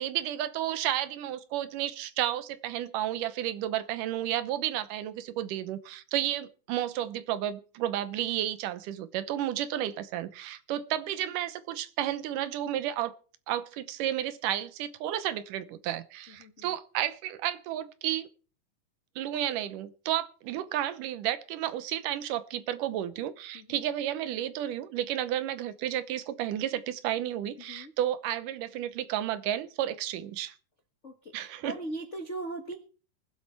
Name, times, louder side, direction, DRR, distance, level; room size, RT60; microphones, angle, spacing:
voice 1, 0.0-13.1 13.5-18.3 19.2-30.5 31.3-31.8, right 12 dB, 75° right, 2.4 m, -32 dB
voice 2, 31.6-32.7, right 2 dB, 75° left, 0.6 m, -38 dB
23.0 x 7.9 x 4.5 m
omnidirectional pair, 3.8 m